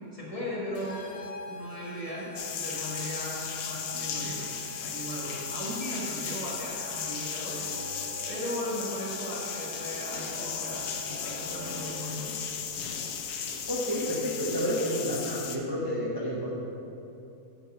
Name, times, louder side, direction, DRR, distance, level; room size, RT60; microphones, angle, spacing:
voice 1, 0.1-1.0 1.5-4.4 4.8-7.5 8.3-12.3, equal, 20° left, -6 dB, 1.6 m, -37 dB
sound 1, 0.7-12.1, equal, 60° left, 0.6 m, -45 dB
sound 2, 2.4-15.6, left 7 dB, 75° left, 1.2 m, -36 dB
sound 3, 7.4-15.1, right 1 dB, 55° right, 2.5 m, -47 dB
voice 2, 13.7-16.5, equal, 20° right, -6 dB, 0.7 m, -30 dB
9.1 x 4.7 x 5.5 m, 2.8 s
omnidirectional pair, 1.7 m